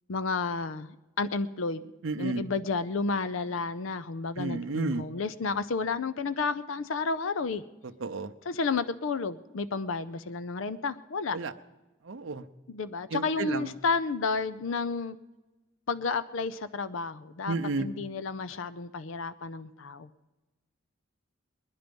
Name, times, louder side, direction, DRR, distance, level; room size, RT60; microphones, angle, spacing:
voice 1, 0.1-1.9 2.2-7.6 8.4-11.4 12.7-15.2 15.9-20.1, left 4 dB, 75° left, 13 dB, 0.5 m, -31 dB
voice 2, 2.0-2.4 4.4-5.1 8.0-8.3 11.3-11.5 12.1-12.4 13.1-13.7 17.5-17.9, right 3 dB, 75° right, 8 dB, 0.7 m, -31 dB
21.5 x 10.5 x 5.2 m, 1.2 s
head